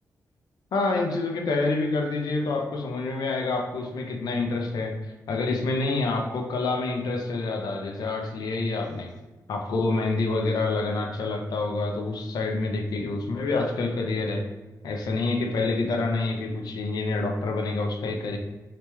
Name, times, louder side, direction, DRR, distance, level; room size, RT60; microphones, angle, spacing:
voice 1, 0.7-4.9 5.3-9.1 9.5-14.4 14.8-18.4, left 3 dB, 80° left, 3 dB, 0.5 m, -27 dB
3.4 x 2.9 x 3.0 m, 1.2 s
cardioid pair, 80°, 7 cm